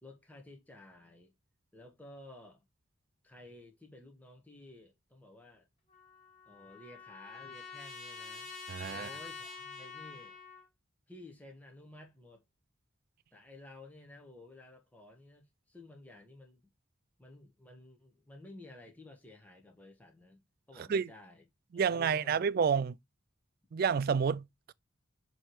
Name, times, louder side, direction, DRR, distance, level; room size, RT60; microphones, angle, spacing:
voice 1, 0.0-1.3 1.7-2.6 3.2-5.7 6.5-8.5 8.9-10.4 11.1-12.4 13.3-16.7 17.2-20.4 20.7-21.4 21.7-22.9, left 2 dB, 10° left, 1.2 m, -53 dB
Trumpet, 5.9-10.6, left 5 dB, 30° left, 2.2 m, -47 dB
voice 2, 8.7-9.1 20.9-21.1 21.7-23.0 23.7-24.7, right 6 dB, 50° right, 0.3 m, -29 dB
7.6 x 3.1 x 4.6 m
head